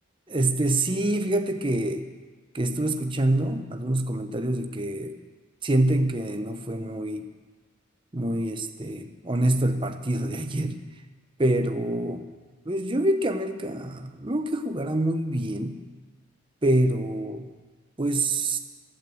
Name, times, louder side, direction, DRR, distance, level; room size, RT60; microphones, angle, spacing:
voice 1, 0.3-2.1 2.5-5.2 5.6-7.3 8.1-10.8 11.4-12.3 12.6-15.8 16.6-17.5 18.0-18.6, right 1 dB, 25° right, 6 dB, 0.8 m, -26 dB
14.5 x 8.5 x 7.8 m, 1.4 s
head